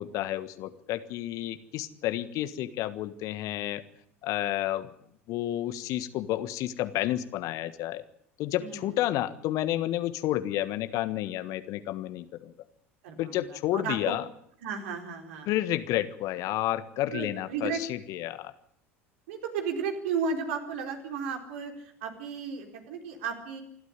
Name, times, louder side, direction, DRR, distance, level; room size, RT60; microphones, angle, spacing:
voice 1, 0.0-3.8 4.2-4.9 5.3-8.0 8.4-12.5 13.2-14.2 15.5-18.5, left 14 dB, 50° left, 13 dB, 1.5 m, -30 dB
voice 2, 8.6-9.0 13.0-14.1 14.6-15.5 17.1-17.8 19.3-23.6, right 5 dB, 60° right, 4 dB, 4.2 m, -34 dB
27.0 x 13.0 x 9.8 m, 0.70 s
figure-of-eight pair, 75°, 7 cm